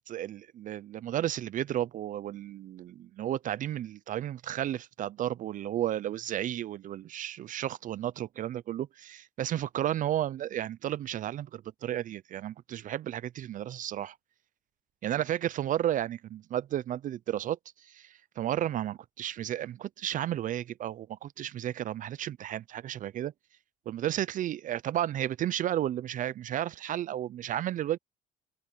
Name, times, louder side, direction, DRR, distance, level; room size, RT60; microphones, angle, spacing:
voice 1, 0.1-14.2 15.0-23.3 23.9-28.0, right 12 dB, 50° right, 0.5 m, -33 dB
cardioid pair, 110°, 17 cm